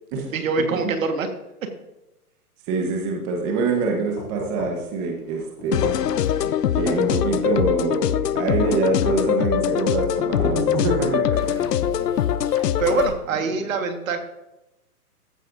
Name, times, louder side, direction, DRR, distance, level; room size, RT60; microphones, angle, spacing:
voice 1, 0.3-1.3 12.8-14.2, right 4 dB, 55° right, 6 dB, 1.6 m, -24 dB
voice 2, 2.7-6.0 6.7-11.6, right 4 dB, 20° right, 1 dB, 1.2 m, -25 dB
sound 1, 3.6-13.4, left 1 dB, 10° left, 1.9 m, -39 dB
sound 2, 4.2-4.9 5.6-6.3 7.1-7.8 8.6-9.4 10.1-10.7 11.4-12.3, left 2 dB, 25° left, 2.3 m, -38 dB
sound 3, 5.7-13.1, left 10 dB, 85° left, 0.6 m, -22 dB
14.5 x 8.2 x 2.6 m, 0.93 s
hypercardioid pair, 150°, 46 cm